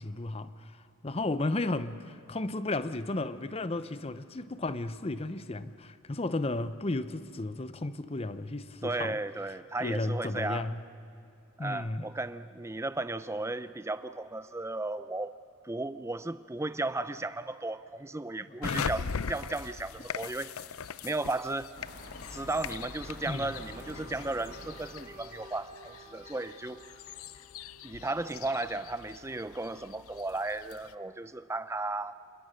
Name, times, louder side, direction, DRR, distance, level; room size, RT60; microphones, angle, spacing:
voice 1, 0.0-9.2 9.8-10.8 11.6-12.1 18.5-18.9 23.3-23.5, left 2 dB, 25° left, 0.7 m, -34 dB
voice 2, 8.8-10.7 11.6-15.3 15.6-20.5 21.0-21.7 22.3-26.8 27.8-32.2, right 2 dB, 10° right, 0.5 m, -35 dB
sound 1, 18.6-30.9, left 6 dB, 80° left, 0.6 m, -41 dB
sound 2, 21.8-25.5, left 1 dB, 45° left, 2.3 m, -47 dB
Wind instrument woodwind instrument, 23.3-27.9, equal, 35° right, 1.7 m, -53 dB
27.0 x 21.5 x 6.5 m
head